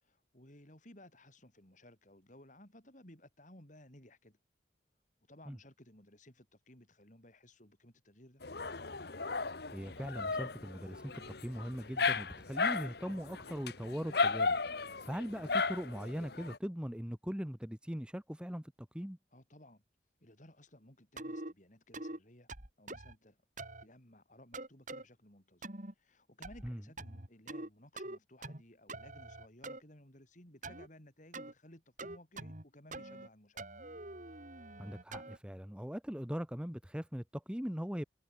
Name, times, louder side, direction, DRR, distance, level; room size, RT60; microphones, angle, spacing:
voice 1, 0.0-4.4 5.3-8.4 19.3-19.8 20.2-22.5 22.8-23.4 23.8-25.7 26.0-33.6 34.3-34.4, left 1 dB, 40° left, 4.9 m, -58 dB
Dog, 8.4-16.6, left 4 dB, 55° left, 1.3 m, -35 dB
voice 2, 9.7-14.6 15.0-19.2 26.6-26.8 34.8-38.0, equal, 5° right, 0.9 m, -40 dB
sound 1, 21.2-21.5 21.9-22.2 22.5-23.1 23.6-23.8 24.5-25.0 25.6-25.9 26.4-26.7 27.0-27.7 28.0-28.6 28.9-29.8 30.6-30.9 31.3-31.5 32.0-32.6 32.9-33.3 33.6-35.4, right 2 dB, 40° right, 3.2 m, -45 dB
head